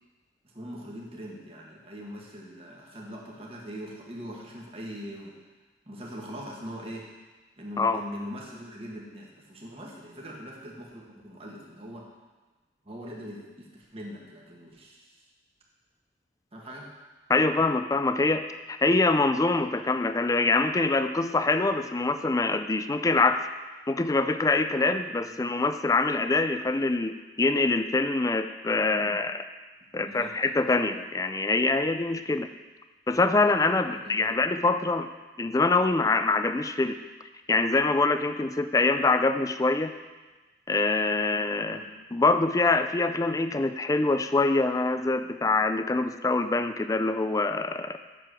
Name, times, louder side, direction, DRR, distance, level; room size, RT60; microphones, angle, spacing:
voice 1, 0.4-5.4 5.9-7.1 7.6-12.1 12.8-15.2 16.5-16.9 28.9-29.2 29.9-30.3 33.8-34.3 41.7-41.8, equal, 30° right, -2 dB, 1.4 m, -41 dB
voice 2, 17.3-23.4 23.9-29.4 29.9-32.5 33.1-35.1 35.4-36.9 37.5-39.9 40.7-41.8 42.1-48.0, left 3 dB, 20° left, 9 dB, 0.4 m, -24 dB
7.4 x 7.0 x 6.2 m, 1.2 s
head